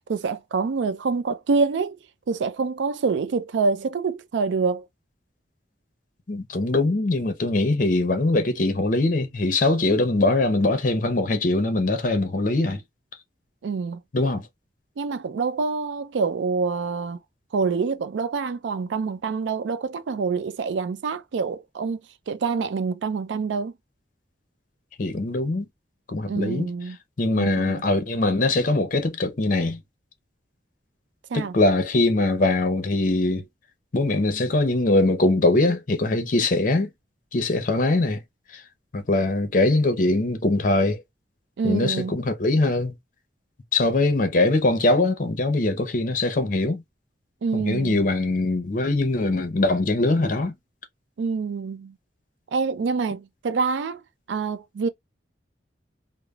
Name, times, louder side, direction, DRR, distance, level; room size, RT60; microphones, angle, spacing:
voice 1, 0.1-2.0 2.3-4.9 13.6-14.0 15.0-17.2 17.5-22.0 22.3-23.7 26.3-27.0 27.4-27.8 31.3-31.5 41.6-42.2 47.4-48.0 51.2-51.9 52.5-54.0 54.3-54.9, right 4 dB, 85° right, 0.4 m, -26 dB
voice 2, 6.3-12.8 14.1-14.5 25.0-25.7 26.1-26.7 27.2-29.8 31.3-33.4 33.9-36.9 37.3-38.2 38.5-38.6 38.9-41.0 41.6-42.9 43.7-46.8 47.5-50.5, left 2 dB, 50° left, 0.6 m, -22 dB
3.1 x 2.0 x 2.3 m
head